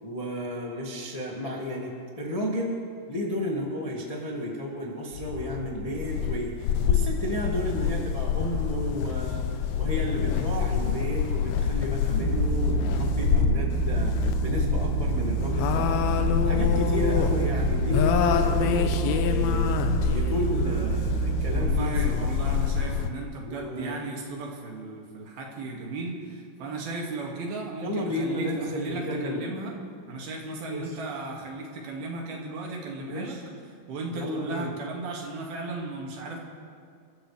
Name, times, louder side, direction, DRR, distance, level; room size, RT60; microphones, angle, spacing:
voice 1, 0.0-2.7 3.1-9.5 9.8-14.1 14.4-19.7 20.1-22.5 23.5-24.0 27.8-29.5 30.7-31.0 33.0-33.4 34.1-34.7, equal, 40° left, -3 dB, 0.5 m, -32 dB
sound 1, 5.1-23.1, left 8 dB, 75° left, 2.5 m, -26 dB
sound 2, 12.2-21.8, right 13 dB, 85° right, 2.7 m, -29 dB
voice 2, 21.5-29.7 30.1-33.4 33.9-36.4, right 3 dB, 65° right, -1 dB, 4.0 m, -35 dB
29.5 x 14.0 x 3.4 m, 2.2 s
omnidirectional pair, 4.7 m